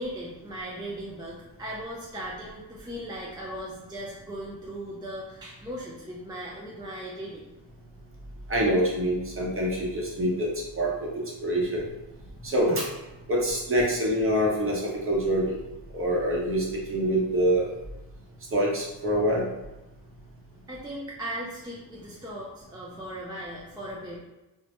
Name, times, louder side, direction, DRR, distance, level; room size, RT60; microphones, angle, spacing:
voice 1, 0.0-7.4 20.7-24.2, right 1 dB, 10° right, -5 dB, 0.4 m, -38 dB
voice 2, 8.5-10.5 10.8-11.9 12.4-12.9 13.3-15.6 15.9-17.7 18.5-19.4, equal, 30° right, -3 dB, 0.8 m, -25 dB
2.1 x 2.1 x 2.9 m, 1.0 s
cardioid pair, 70°, 46 cm